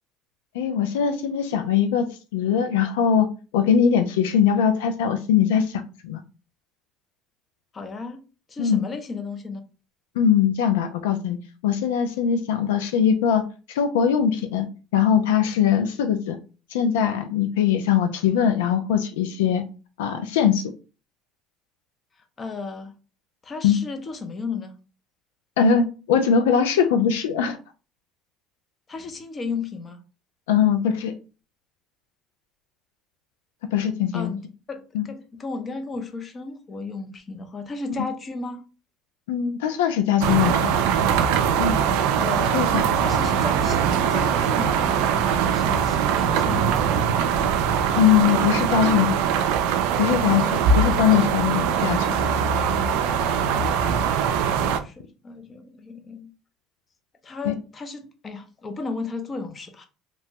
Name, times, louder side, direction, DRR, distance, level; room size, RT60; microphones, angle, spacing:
voice 1, 0.5-2.1 2.3-3.3 3.5-6.2 8.6-8.8 10.2-11.4 11.6-13.4 13.7-14.7 14.9-16.4 16.7-19.6 20.0-20.6 23.6-23.8 25.6-27.6 30.5-31.1 33.7-34.3 34.9-35.1 39.3-40.7 41.6-41.7 42.5-42.8 48.0-49.2 50.0-52.1 57.4-57.5, left 8 dB, 90° left, 0.3 m, -21 dB
voice 2, 7.7-8.2 8.5-9.6 22.4-23.0 23.4-24.8 28.9-30.0 34.1-38.6 42.2-47.5 54.6-56.3 57.2-59.8, left 4 dB, 30° left, 0.6 m, -34 dB
sound 1, 40.2-54.8, right 7 dB, 80° right, 0.3 m, -22 dB
2.9 x 2.2 x 2.8 m
supercardioid pair, 85°, 0 cm